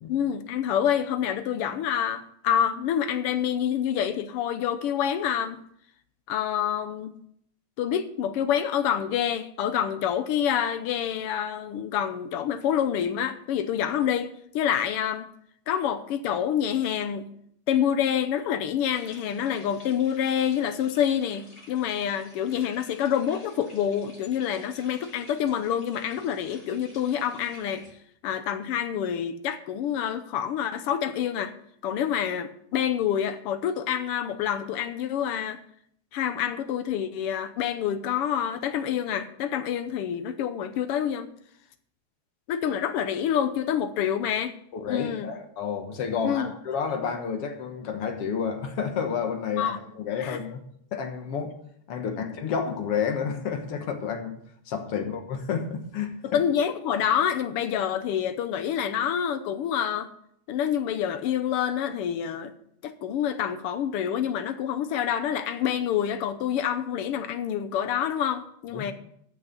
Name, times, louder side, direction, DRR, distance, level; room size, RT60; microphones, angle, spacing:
voice 1, 0.1-5.6 6.3-7.1 7.8-15.3 15.7-17.3 17.7-27.8 28.2-31.5 31.8-35.6 36.1-41.3 42.5-44.6 44.9-45.3 46.2-46.5 49.6-49.8 50.2-50.4 52.0-52.2 56.2-60.1 60.5-62.5 62.8-68.9, left 9 dB, 75° left, 11 dB, 1.3 m, -27 dB
sound 1, 18.9-27.9, left 1 dB, 25° left, 5.2 m, -52 dB
voice 2, 44.7-50.6 50.9-51.6 51.9-54.4 54.7-56.4 68.7-68.9, left 6 dB, 60° left, 6 dB, 1.9 m, -30 dB
13.5 x 6.2 x 6.7 m, 0.68 s
omnidirectional pair, 3.4 m